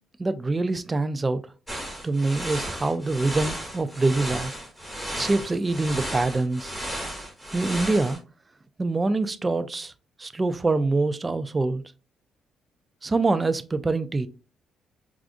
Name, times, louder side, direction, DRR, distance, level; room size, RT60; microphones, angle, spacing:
voice 1, 0.2-1.4 2.0-4.5 5.2-6.7 7.5-8.2 8.8-9.9 10.2-11.8 13.0-14.3, right 3 dB, 20° right, 0.3 m, -25 dB
sound 1, 1.7-8.2, equal, ahead, 1.1 m, -34 dB
4.8 x 2.4 x 2.5 m
cardioid pair, 145°, 0 cm